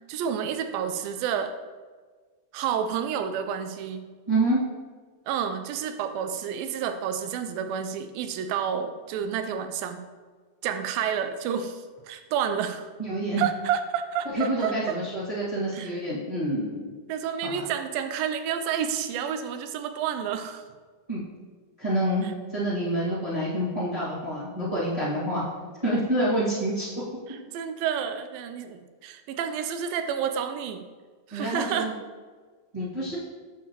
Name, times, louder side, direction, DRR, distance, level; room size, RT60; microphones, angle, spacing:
voice 1, 0.1-1.6 2.5-4.1 5.3-10.0 10.6-12.9 13.4-15.0 15.7-16.0 17.1-20.6 22.2-22.3 27.3-30.8 31.3-31.9, right 8 dB, 90° right, 8 dB, 2.4 m, -30 dB
voice 2, 4.3-4.6 13.0-13.4 14.3-16.9 17.4-17.7 21.1-21.2 21.8-25.4 25.8-26.9 31.3-31.9 32.7-33.1, right 1 dB, 25° right, -11 dB, 0.8 m, -27 dB
8.3 x 7.1 x 2.9 m, 1.5 s
omnidirectional pair, 4.0 m